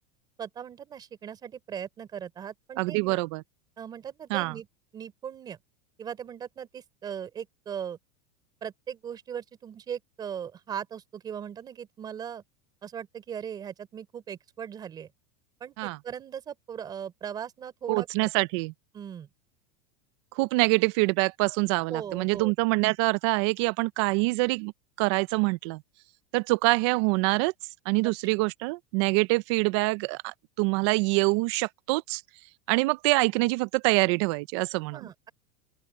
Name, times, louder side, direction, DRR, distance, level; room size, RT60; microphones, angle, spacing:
voice 1, 0.4-3.2 3.8-4.7 4.9-5.6 6.0-8.0 8.6-12.4 12.8-15.1 15.6-18.3 18.9-19.3 21.9-22.5 34.9-35.3, right 8 dB, 20° right, 3.4 m, -38 dB
voice 2, 2.8-3.4 4.3-4.6 15.8-16.0 17.9-18.7 20.3-24.7 25.0-25.8 26.3-27.5 27.9-32.2 32.7-35.1, right 25 dB, 45° right, 0.5 m, -25 dB
open air
supercardioid pair, 165°, 20 cm